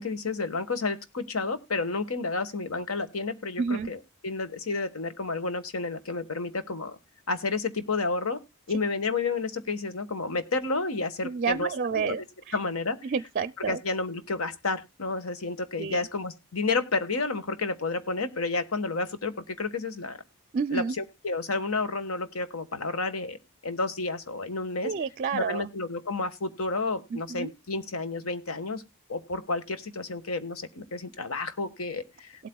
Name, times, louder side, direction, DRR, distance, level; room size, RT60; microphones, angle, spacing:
voice 1, 0.0-7.0 7.3-8.4 8.7-12.2 12.5-13.0 13.7-20.2 20.7-23.4 23.6-24.9 25.3-28.8 29.1-32.5, left 3 dB, 80° left, 1.4 m, -31 dB
voice 2, 3.6-3.9 11.2-12.6 13.0-13.8 15.8-16.1 20.5-21.0 24.8-25.7 27.1-27.5 32.4-32.5, right 5 dB, 40° right, 0.4 m, -30 dB
18.5 x 8.4 x 2.2 m
head